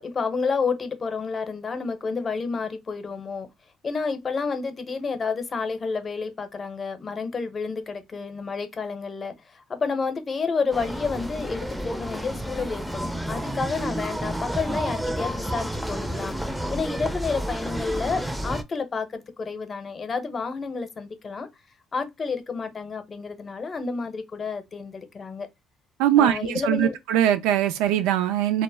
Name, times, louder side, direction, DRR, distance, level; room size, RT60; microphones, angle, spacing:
voice 1, 0.0-3.5 3.8-16.3 16.7-21.5 21.9-25.5 26.2-27.0, left 4 dB, 40° left, 0.7 m, -30 dB
sound 1, 10.7-18.6, right 1 dB, 5° right, 0.4 m, -30 dB
voice 2, 26.0-28.6, right 11 dB, 85° right, 0.4 m, -21 dB
2.1 x 2.1 x 3.3 m
supercardioid pair, 65°, 0 cm